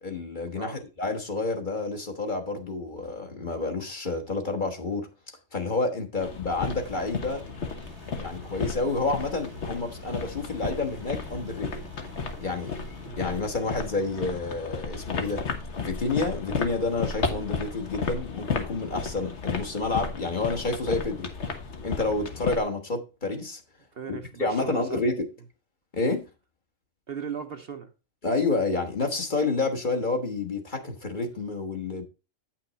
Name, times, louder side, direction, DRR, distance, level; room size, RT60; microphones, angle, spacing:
voice 1, 0.0-7.4 8.1-11.9 12.4-12.8 13.2-15.5 15.8-21.3 21.8-23.6 24.1-25.3 25.9-26.3 28.2-32.0, left 3 dB, 35° left, 1.5 m, -29 dB
sound 1, 6.2-22.6, left 4 dB, 55° left, 1.5 m, -34 dB
sound 2, 6.6-13.1, right 2 dB, 85° right, 2.0 m, -50 dB
voice 2, 23.9-25.0 27.1-27.9, right 7 dB, 50° right, 0.9 m, -37 dB
9.3 x 6.0 x 4.0 m
omnidirectional pair, 1.4 m